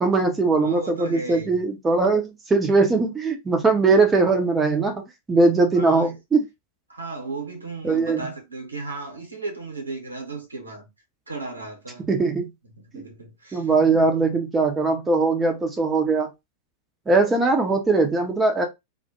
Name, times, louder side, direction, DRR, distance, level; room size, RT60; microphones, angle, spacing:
voice 1, 0.0-5.0 5.3-6.4 7.8-8.2 12.1-12.5 13.5-16.3 17.1-18.7, right 3 dB, 15° right, 0.6 m, -20 dB
voice 2, 0.6-1.6 5.7-6.2 6.9-10.9 11.3-12.1 12.7-13.7, right 3 dB, 80° right, 0.9 m, -35 dB
2.2 x 2.1 x 2.9 m
figure-of-eight pair, 90°, 0 cm